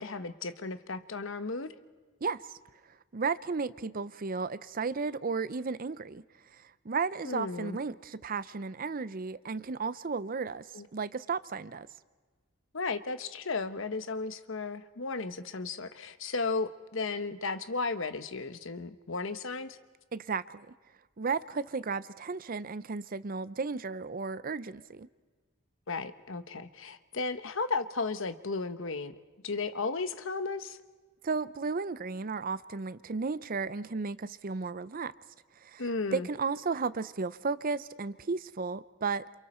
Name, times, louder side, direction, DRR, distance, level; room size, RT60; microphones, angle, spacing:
voice 1, 0.0-1.7 7.2-7.8 10.7-10.9 12.7-19.8 25.9-29.2 29.4-30.8 35.8-36.3, left 3 dB, 65° left, 1.1 m, -34 dB
voice 2, 3.1-6.2 6.8-10.7 10.9-11.9 20.1-20.7 21.2-25.1 31.2-35.1 35.6-35.8 36.1-39.2, right 4 dB, 40° right, 0.6 m, -34 dB
28.5 x 27.5 x 4.4 m
head